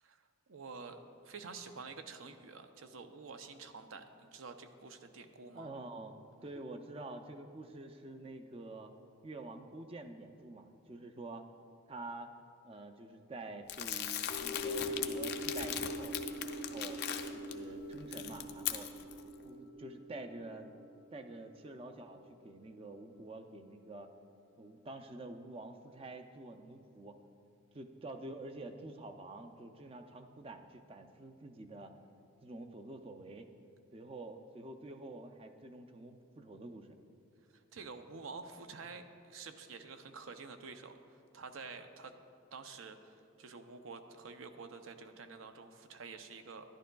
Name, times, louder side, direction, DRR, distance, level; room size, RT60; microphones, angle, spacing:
voice 1, 0.5-5.7 37.7-40.9 41.3-42.1 42.5-46.6, right 4 dB, 80° right, 8 dB, 0.6 m, -48 dB
voice 2, 5.5-8.9 9.2-11.5 11.9-12.3 12.6-16.1 16.5-17.0 17.3-18.9 19.4-20.7 21.1-24.1 24.6-27.2 27.7-31.9 32.4-33.5 33.9-37.0, right 2 dB, 25° right, 6 dB, 0.4 m, -48 dB
Crumpling crinkling, 13.7-17.5 17.9-19.2, left 10 dB, 50° left, 0.4 m, -39 dB
sound 1, 14.3-22.7 23.0-23.1, equal, 90° left, 0.9 m, -43 dB
11.5 x 11.0 x 2.3 m, 2.5 s
head